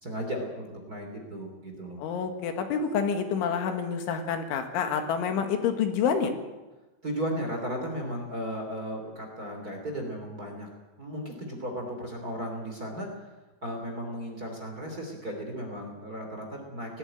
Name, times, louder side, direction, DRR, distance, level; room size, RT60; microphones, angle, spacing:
voice 1, 0.0-2.0 7.0-10.7 11.0-13.3 13.6-17.0, equal, 20° right, 2 dB, 3.1 m, -35 dB
voice 2, 2.0-6.4, left 6 dB, 85° left, 6 dB, 4.2 m, -28 dB
19.5 x 15.5 x 9.0 m, 1.1 s
omnidirectional pair, 5.4 m